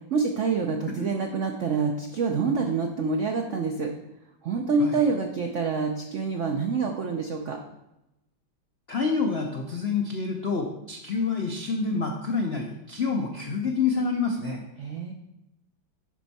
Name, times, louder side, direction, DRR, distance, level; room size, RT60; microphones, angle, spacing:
voice 1, 0.1-3.9 4.4-7.6 14.8-15.1, right 4 dB, 80° right, 3 dB, 0.6 m, -26 dB
voice 2, 8.9-14.6, left 4 dB, 75° left, 2 dB, 0.5 m, -27 dB
11.0 x 4.4 x 4.1 m, 0.89 s
omnidirectional pair, 2.2 m